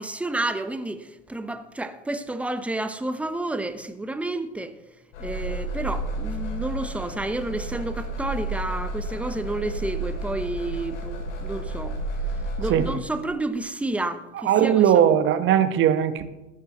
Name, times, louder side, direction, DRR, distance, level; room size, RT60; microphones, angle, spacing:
voice 1, 0.0-4.8 5.2-12.0 12.6-14.8, right 2 dB, 5° right, 0.9 m, -30 dB
sound 1, 5.1-13.0, right 2 dB, 65° left, 3.8 m, -31 dB
voice 2, 14.4-16.3, right 9 dB, 30° right, 1.2 m, -19 dB
20.0 x 10.5 x 3.1 m
hypercardioid pair, 95°, 37 cm